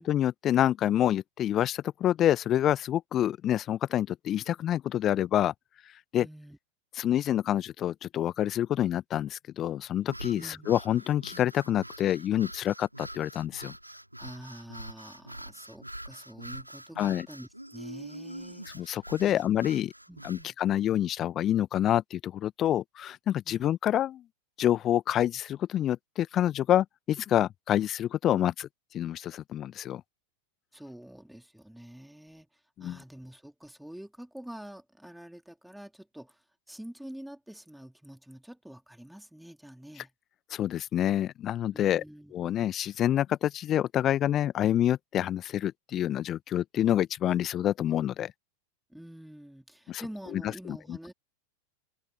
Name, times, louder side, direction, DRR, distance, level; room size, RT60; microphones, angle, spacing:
voice 1, 0.1-5.5 6.1-6.3 6.9-13.7 17.0-17.3 18.7-19.9 20.2-24.2 24.6-28.7 28.9-30.0 32.8-33.0 40.0-40.1 40.5-42.0 42.3-48.3 49.9-51.1, left 11 dB, 30° left, 1.1 m, -27 dB
voice 2, 6.2-6.6 10.3-10.7 14.2-19.4 20.1-20.5 23.5-23.7 30.7-32.5 32.8-36.3 36.7-40.1 41.7-42.5 48.9-51.1, right 1 dB, ahead, 3.6 m, -47 dB
sound 1, 10.0-20.5, right 1 dB, 90° right, 6.0 m, -44 dB
figure-of-eight pair, 90°, 0 cm